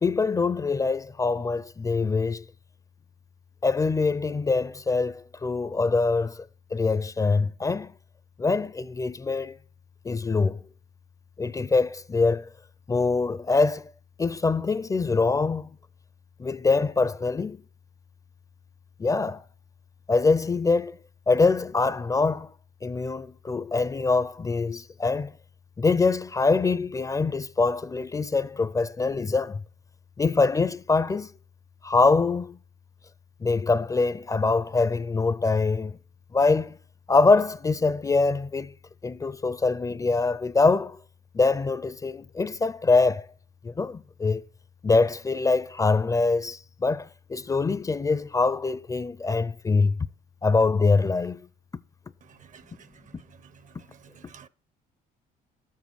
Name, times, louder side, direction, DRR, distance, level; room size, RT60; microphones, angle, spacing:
voice 1, 0.0-2.4 3.6-6.5 6.7-7.9 8.4-9.5 10.0-10.6 11.4-12.5 12.9-13.9 14.2-15.7 16.4-17.6 19.0-19.4 20.1-21.0 21.3-22.5 22.8-25.3 25.8-29.6 30.2-31.3 31.8-32.6 33.4-36.0 36.3-36.8 37.1-38.7 39.0-41.0 41.3-43.3 43.6-44.4 44.8-50.0 50.4-51.5, left 3 dB, 20° left, 0.4 m, -24 dB
voice 2, 52.3-52.6 54.1-54.5, right 7 dB, 50° right, 0.7 m, -50 dB
13.0 x 7.4 x 4.6 m
cardioid pair, 110°, 17 cm